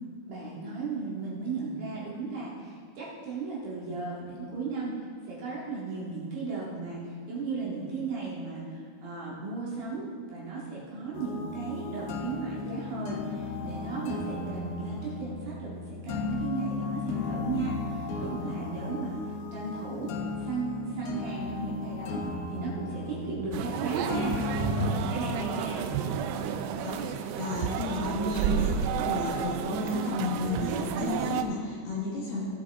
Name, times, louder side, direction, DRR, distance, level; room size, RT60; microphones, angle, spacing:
voice 1, 0.3-24.4 24.7-25.8, right 4 dB, 55° right, -6 dB, 3.3 m, -35 dB
sound 1, 11.1-25.0, left 4 dB, 85° left, 2.2 m, -35 dB
sound 2, 23.5-31.4, right 7 dB, 85° right, 3.2 m, -31 dB
voice 2, 26.8-32.4, left 2 dB, 65° left, -4 dB, 2.8 m, -32 dB
18.0 x 7.6 x 3.6 m, 2.2 s
omnidirectional pair, 5.8 m